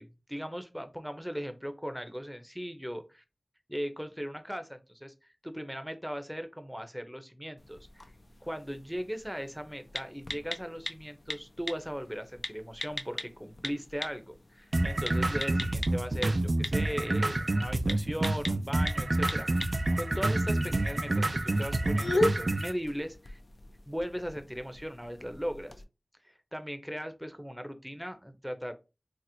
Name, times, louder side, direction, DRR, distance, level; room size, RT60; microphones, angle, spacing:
voice 1, 0.0-3.2 3.7-8.0 8.4-23.4 23.9-25.7 26.2-28.7, equal, 5° right, 8 dB, 0.6 m, -38 dB
sound 1, 7.6-25.8, left 2 dB, 65° left, 0.4 m, -39 dB
sound 2, 14.7-22.7, right 2 dB, 65° right, 0.3 m, -28 dB
4.2 x 2.0 x 2.6 m, 0.28 s
wide cardioid pair, 45°, 0 cm